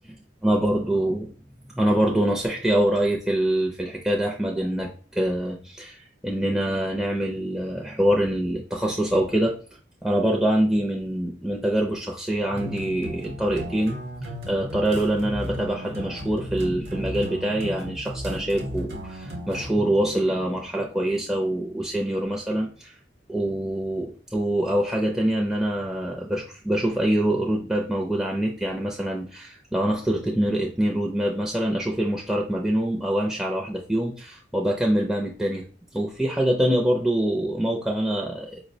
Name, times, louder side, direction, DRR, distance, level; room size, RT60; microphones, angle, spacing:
voice 1, 0.4-1.3 1.8-9.6 10.0-14.0 14.2-22.9 23.3-35.7 35.9-38.6, right 1 dB, 5° right, -1 dB, 0.4 m, -25 dB
sound 1, 12.5-19.7, equal, 60° right, 0.7 m, -35 dB
4.7 x 2.0 x 2.6 m, 0.40 s
head